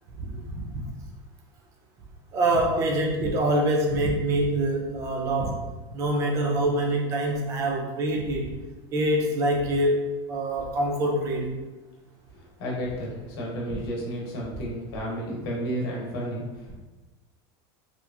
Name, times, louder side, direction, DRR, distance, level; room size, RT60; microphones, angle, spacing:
voice 1, 2.3-8.5 8.9-10.0 10.3-11.6, right 1 dB, 25° right, 0 dB, 0.4 m, -25 dB
voice 2, 12.3-16.8, equal, 65° left, -3 dB, 0.9 m, -32 dB
2.9 x 2.4 x 2.3 m, 1.2 s
supercardioid pair, 175°, 14 cm